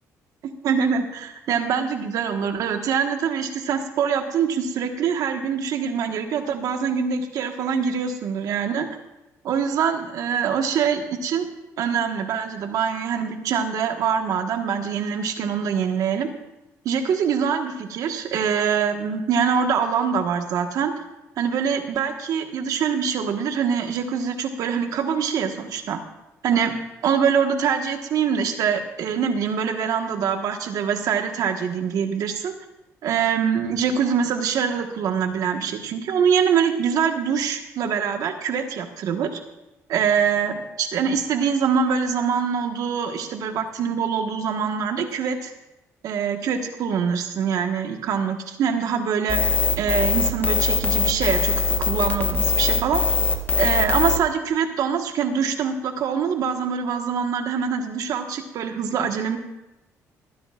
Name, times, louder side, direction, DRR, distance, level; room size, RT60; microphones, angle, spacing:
voice 1, 0.6-8.9 9.4-11.5 11.8-16.3 16.8-20.9 21.4-26.0 26.4-26.7 27.0-32.5 33.0-39.4 39.9-45.5 46.0-49.4 49.8-51.5 51.8-53.0 53.6-59.4, right 7 dB, 70° right, 5 dB, 1.4 m, -24 dB
sound 1, 49.3-54.2, left 4 dB, 30° left, 1.3 m, -21 dB
28.0 x 10.0 x 2.5 m, 0.97 s
cardioid pair, 90°, 6 cm